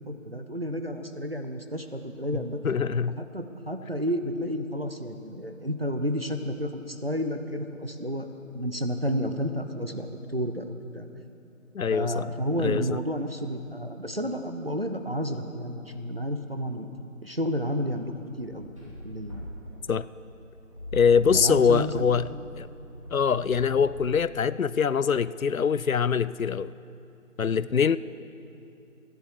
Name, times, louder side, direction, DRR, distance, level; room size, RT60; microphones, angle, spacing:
voice 1, 0.1-2.6 3.2-8.3 8.5-11.1 11.9-16.9 17.2-19.5 21.1-22.0 23.3-23.4, equal, 45° right, 6 dB, 0.8 m, -31 dB
voice 2, 2.6-3.2 11.7-12.3 12.6-13.0 19.9-20.1 20.9-22.3 22.6-22.7 23.1-26.7 27.4-28.0, left 6 dB, 80° left, 17 dB, 0.6 m, -23 dB
sound 1, 18.4-24.4, equal, 25° right, 2.7 m, -40 dB
28.0 x 10.5 x 4.7 m, 2.8 s
figure-of-eight pair, 180°, 41 cm